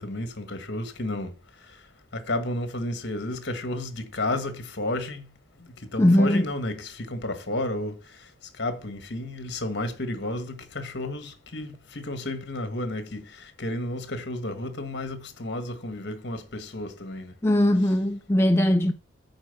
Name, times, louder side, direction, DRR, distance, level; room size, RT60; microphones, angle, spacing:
voice 1, 0.0-1.3 1.6-1.8 2.1-5.3 5.6-17.3, left 1 dB, 55° left, 1.5 m, -32 dB
voice 2, 6.0-6.5 17.4-18.9, left 1 dB, 10° left, 0.3 m, -20 dB
8.9 x 4.6 x 6.8 m
head